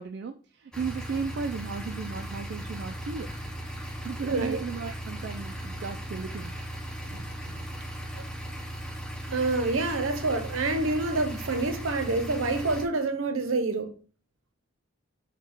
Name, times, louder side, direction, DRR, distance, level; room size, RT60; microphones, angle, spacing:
voice 1, 0.0-3.3 4.0-6.6, right 5 dB, 55° right, 0.3 m, -35 dB
sound 1, 0.7-12.9, right 1 dB, 5° left, 0.5 m, -37 dB
voice 2, 4.2-4.6 7.0-7.2 8.2-8.3 9.3-14.0, right 3 dB, 70° right, 0.7 m, -27 dB
4.6 x 2.3 x 4.3 m
head